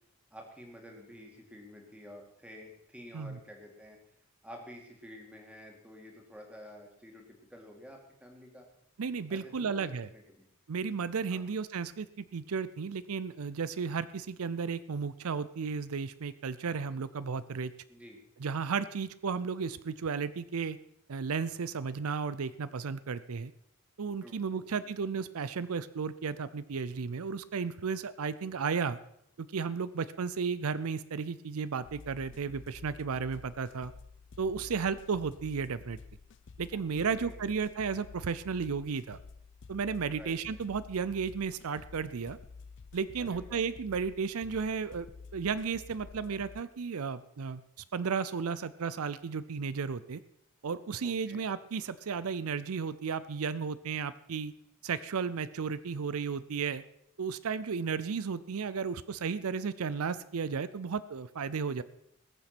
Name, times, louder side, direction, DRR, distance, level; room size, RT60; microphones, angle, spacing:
voice 1, 0.3-4.0 4.4-7.2 7.5-8.7 9.3-10.5 11.3-11.4 17.9-18.2 24.2-24.9 37.0-37.5 40.1-40.6 43.2-43.6 51.0-51.4, equal, 5° right, 1 dB, 2.4 m, -50 dB
voice 2, 9.0-10.1 10.7-17.7 18.4-20.8 21.1-23.5 24.0-29.0 29.4-33.9 34.4-36.0 36.6-39.2 39.7-42.4 42.9-45.1 45.3-47.6 47.9-50.2 50.6-54.5 54.8-56.8 57.2-61.8, right 5 dB, 80° right, 16 dB, 0.5 m, -34 dB
sound 1, 31.8-46.6, left 4 dB, 55° left, 0.5 m, -51 dB
19.5 x 7.2 x 6.0 m, 0.74 s
head